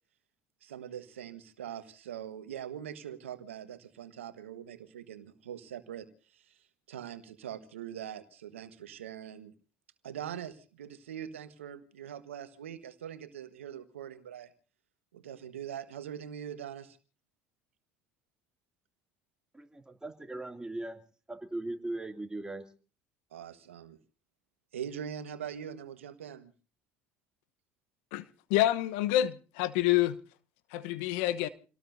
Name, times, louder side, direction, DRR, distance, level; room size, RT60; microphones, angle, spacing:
voice 1, 0.6-6.1 6.3-6.6 6.9-9.5 10.0-14.5 15.1-17.0 23.3-24.0 24.7-26.5, right 9 dB, 90° right, 1.4 m, -42 dB
voice 2, 19.5-21.0 21.3-22.6, right 2 dB, 10° right, 2.6 m, -39 dB
voice 3, 28.5-30.2 30.7-31.5, left 14 dB, 75° left, 1.0 m, -27 dB
28.5 x 18.5 x 2.7 m
hypercardioid pair, 65°, 7 cm